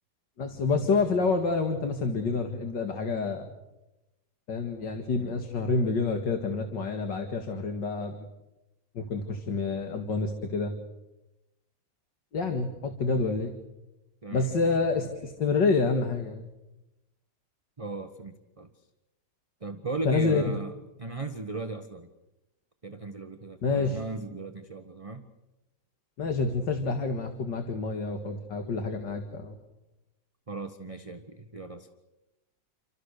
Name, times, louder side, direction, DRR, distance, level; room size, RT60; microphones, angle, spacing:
voice 1, 0.4-3.5 4.5-8.3 8.9-10.7 12.3-13.5 14.3-16.5 20.0-20.4 23.6-24.0 26.2-29.5, left 4 dB, 75° left, 5 dB, 2.6 m, -28 dB
voice 2, 14.2-14.9 17.8-18.7 19.6-20.7 21.0-22.1 22.8-25.2 28.7-29.1 30.5-31.9, right 3 dB, 20° right, 6 dB, 1.2 m, -38 dB
29.0 x 25.5 x 6.7 m, 0.99 s
omnidirectional pair, 1.9 m